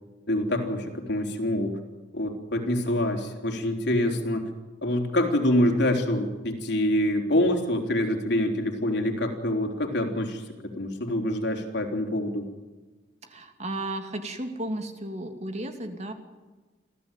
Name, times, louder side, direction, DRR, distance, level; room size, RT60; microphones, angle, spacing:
voice 1, 0.3-1.8 2.1-4.5 4.8-12.5, left 1 dB, 65° left, 3 dB, 4.0 m, -26 dB
voice 2, 13.2-16.1, right 1 dB, 35° right, 6 dB, 2.8 m, -34 dB
28.0 x 15.5 x 9.2 m, 1.3 s
head